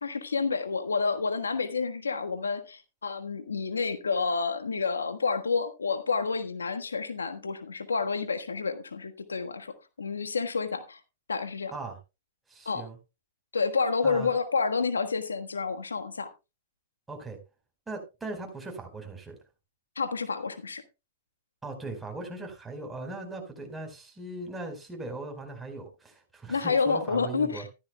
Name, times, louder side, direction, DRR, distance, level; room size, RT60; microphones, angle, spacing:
voice 1, 0.0-11.0 11.3-11.7 12.6-12.8 13.5-16.3 20.0-20.8 26.5-27.6, left 4 dB, 90° left, 1.4 m, -29 dB
voice 2, 12.5-13.0 14.0-14.3 17.1-17.4 17.9-19.4 21.6-27.7, right 2 dB, 10° right, 4.5 m, -39 dB
14.5 x 13.0 x 2.3 m
hypercardioid pair, 110°, 0 cm